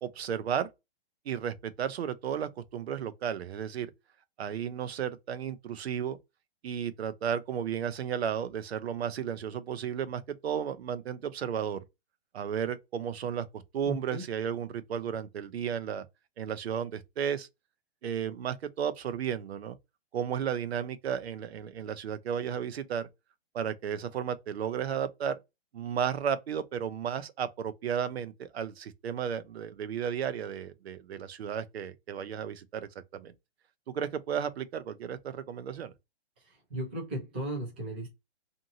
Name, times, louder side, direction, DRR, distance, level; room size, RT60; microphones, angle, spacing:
voice 1, 0.0-0.7 1.3-3.9 4.4-6.2 6.6-11.8 12.3-16.0 16.4-17.5 18.0-19.8 20.1-23.1 23.5-25.3 25.7-33.3 33.9-35.9, right 8 dB, 80° right, 0.6 m, -33 dB
voice 2, 13.8-14.2 36.4-38.1, right 1 dB, 10° right, 0.4 m, -36 dB
2.6 x 2.6 x 2.6 m
hypercardioid pair, 165°, 31 cm